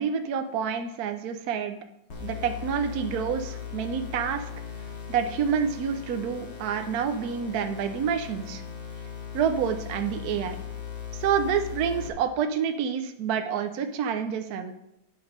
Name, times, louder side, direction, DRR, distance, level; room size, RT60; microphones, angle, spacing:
voice 1, 0.0-1.8 2.2-4.5 5.1-8.6 9.3-10.6 11.1-14.8, right 7 dB, 65° right, 6 dB, 0.9 m, -28 dB
sound 1, 2.1-12.1, left 7 dB, 80° left, 2.7 m, -38 dB
9.6 x 5.9 x 5.3 m, 0.82 s
omnidirectional pair, 2.2 m